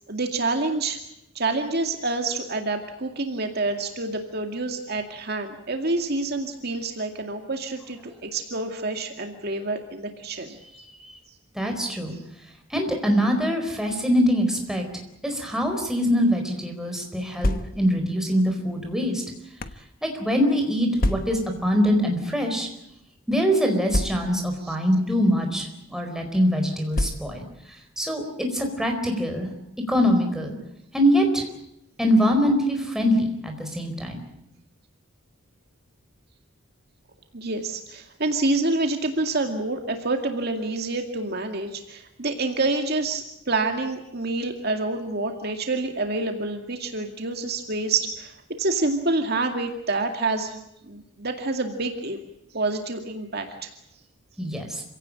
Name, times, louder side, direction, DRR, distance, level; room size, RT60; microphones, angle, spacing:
voice 1, 0.1-1.0 1.3-10.8 24.7-24.8 37.3-52.2 52.5-53.7, right 2 dB, 50° right, 5 dB, 2.2 m, -27 dB
voice 2, 11.5-12.1 12.7-14.8 15.2-19.2 20.0-22.7 23.3-27.4 28.0-29.5 29.9-30.5 30.9-31.5 32.0-34.2 54.4-54.8, equal, 5° right, 2 dB, 4.5 m, -23 dB
sound 1, 17.4-18.1 18.9-19.9 21.0-21.6 22.5-22.6 22.9-23.0 23.9-24.6 25.4-25.7 26.9-27.6, left 1 dB, 45° left, 1.1 m, -28 dB
27.5 x 17.0 x 8.8 m, 0.82 s
head